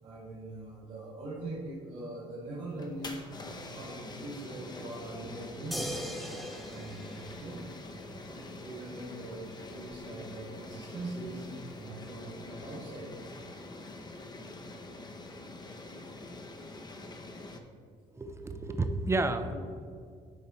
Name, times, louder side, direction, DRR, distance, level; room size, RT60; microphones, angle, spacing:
voice 1, 0.0-7.6 8.1-13.1 19.5-19.6, right 2 dB, 50° right, -6 dB, 2.0 m, -42 dB
sound 1, 2.7-17.6, left 2 dB, 30° left, 0.9 m, -45 dB
sound 2, 5.7-8.2 9.9-10.0, equal, ahead, 1.3 m, -40 dB
voice 2, 18.1-19.6, right 2 dB, 20° right, 8 dB, 0.7 m, -31 dB
10.5 x 4.2 x 4.3 m, 2.2 s
supercardioid pair, 85°, 15 cm